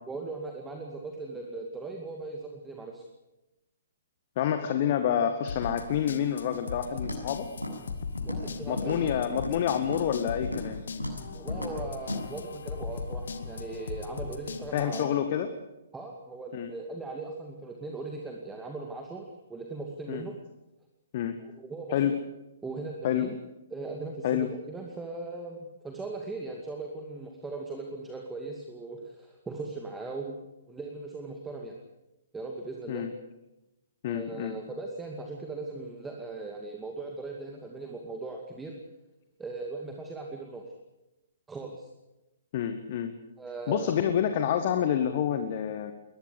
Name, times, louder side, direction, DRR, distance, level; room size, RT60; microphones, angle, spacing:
voice 1, 0.1-3.0 8.2-9.2 11.3-15.1 15.9-20.3 21.6-22.2 22.6-23.3 23.7-25.6 25.8-31.8 32.3-33.1 34.1-38.8 39.4-40.6 41.5-41.9 43.4-44.0, right 3 dB, 10° right, 2 dB, 2.4 m, -39 dB
voice 2, 4.4-7.5 8.7-10.8 14.7-15.5 16.5-16.7 20.1-20.2 21.1-21.4 21.9-22.1 23.0-23.3 24.2-24.5 32.9-33.1 34.0-34.6 42.5-43.2 43.7-45.9, left 9 dB, 40° left, 8 dB, 1.7 m, -28 dB
sound 1, 5.5-15.1, left 4 dB, 60° left, 2.0 m, -38 dB
Walk footsteps, 7.0-7.3 7.6-8.5 8.8-9.6 9.9-10.1 10.4-10.7 11.0-11.2 11.5-11.8 12.1-12.2, left 1 dB, 85° left, 7.7 m, -35 dB
22.0 x 20.0 x 8.3 m, 0.97 s
figure-of-eight pair, 125°, 0 cm